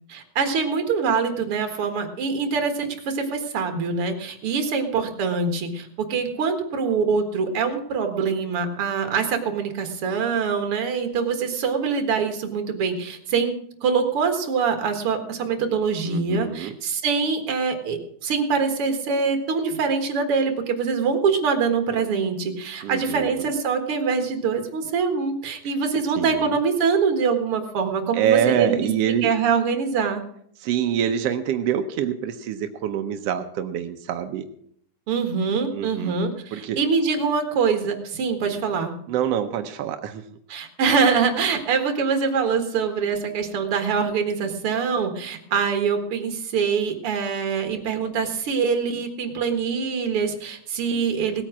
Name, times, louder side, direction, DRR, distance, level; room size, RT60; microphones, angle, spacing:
voice 1, 0.1-28.9 29.2-30.2 35.1-38.9 40.5-51.4, right 5 dB, 50° right, 6 dB, 2.3 m, -24 dB
voice 2, 16.0-16.8 22.8-23.5 26.2-26.5 28.1-29.3 30.6-34.5 35.7-36.2 36.5-36.8 38.5-38.6 39.1-40.4, right 9 dB, 75° right, 7 dB, 1.4 m, -26 dB
18.0 x 8.9 x 6.1 m, 0.66 s
omnidirectional pair, 3.7 m